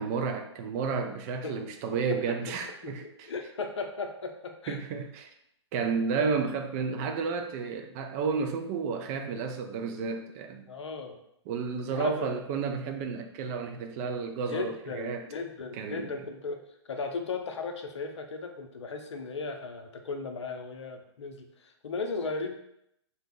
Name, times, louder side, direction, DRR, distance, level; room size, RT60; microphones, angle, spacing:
voice 1, 0.0-3.3 4.7-5.3 5.7-10.7 11.5-15.3 15.7-16.1, right 5 dB, 30° right, 5 dB, 0.3 m, -32 dB
voice 2, 1.9-2.4 2.8-4.8 10.7-11.2 11.9-12.4 14.5-22.5, left 4 dB, 70° left, 5 dB, 0.5 m, -36 dB
2.7 x 2.0 x 3.6 m, 0.77 s
figure-of-eight pair, 120°, 15 cm